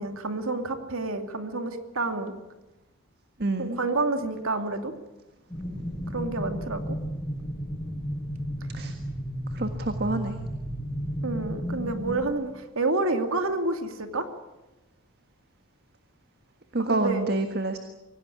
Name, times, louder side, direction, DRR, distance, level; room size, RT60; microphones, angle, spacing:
voice 1, 0.0-2.3 3.6-4.9 6.1-7.0 11.2-14.3 16.8-17.2, right 2 dB, 75° right, 7 dB, 2.5 m, -29 dB
voice 2, 3.4-3.8 8.7-8.9 9.5-10.4 16.7-17.8, right 2 dB, 50° right, 7 dB, 1.6 m, -28 dB
sound 1, 5.5-12.2, equal, 10° left, 6.6 m, -33 dB
25.0 x 17.5 x 10.0 m, 1.0 s
head